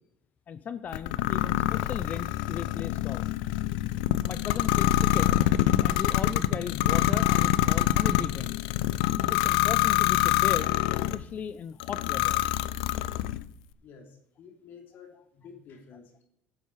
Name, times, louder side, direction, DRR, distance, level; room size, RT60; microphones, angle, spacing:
voice 1, 0.5-3.3 4.2-8.6 9.3-12.5, left 7 dB, 40° left, 13 dB, 0.6 m, -37 dB
sound 1, 0.9-11.2 11.8-13.4, left 14 dB, 85° left, 0.5 m, -25 dB
voice 2, 13.8-16.2, left 6 dB, 55° left, 3 dB, 3.2 m, -50 dB
16.0 x 7.2 x 4.8 m, 0.73 s
supercardioid pair, 90°, 4 cm